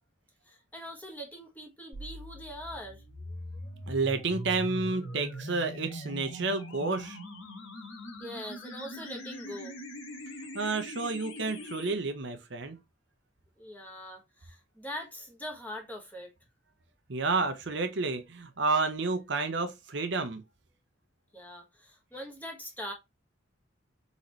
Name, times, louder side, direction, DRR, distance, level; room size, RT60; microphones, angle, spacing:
voice 1, 0.4-3.0 8.2-9.8 13.6-16.3 21.3-22.9, equal, 10° left, 1.3 m, -42 dB
sound 1, 1.9-11.9, equal, 80° left, 1.6 m, -42 dB
voice 2, 3.9-7.2 10.5-12.8 17.1-20.4, right 3 dB, 60° right, 0.8 m, -30 dB
4.1 x 4.1 x 3.1 m
head